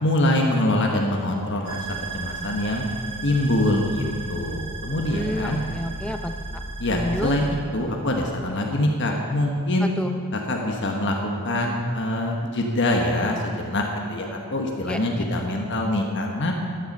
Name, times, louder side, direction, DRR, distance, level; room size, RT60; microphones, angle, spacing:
voice 1, 0.0-1.9 2.1-2.8 3.2-5.6 6.8-9.9 10.3-11.1 11.4-16.5, left 1 dB, 55° left, 1 dB, 1.3 m, -24 dB
sound 1, 1.6-7.5, right 3 dB, 65° right, 3.4 m, -34 dB
voice 2, 5.1-6.6 6.9-7.3 9.8-10.1 14.9-15.0, left 1 dB, 5° left, 5 dB, 0.7 m, -29 dB
14.5 x 10.5 x 5.4 m, 2.2 s
head